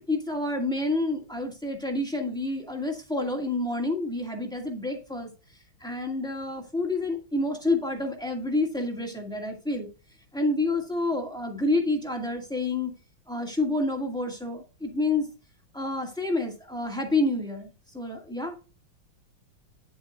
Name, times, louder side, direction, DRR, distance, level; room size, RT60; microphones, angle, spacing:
voice 1, 0.1-5.3 5.8-9.9 10.3-12.9 13.3-15.3 15.7-18.7, left 2 dB, ahead, 1 dB, 1.9 m, -28 dB
10.5 x 7.1 x 2.5 m, 0.32 s
omnidirectional pair, 2.3 m